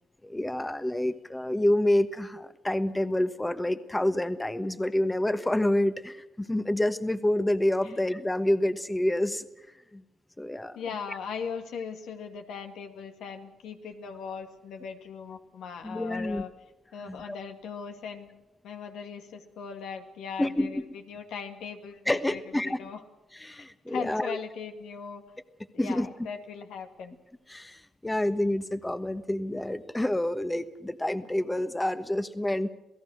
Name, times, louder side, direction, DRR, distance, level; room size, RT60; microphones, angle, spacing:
voice 1, 0.2-9.5 9.9-10.0 10.4-10.8 15.8-16.4 17.0-17.2 20.4-20.8 22.1-22.8 23.4-24.4 25.8-26.1 27.5-32.7, left 1 dB, 15° left, 11 dB, 1.2 m, -28 dB
voice 2, 10.8-16.5 16.9-18.3 18.6-23.0 23.5-25.2 25.7-27.1, left 6 dB, 85° left, 5 dB, 2.2 m, -39 dB
28.0 x 17.0 x 6.5 m, 0.97 s
cardioid pair, 75°, 0 cm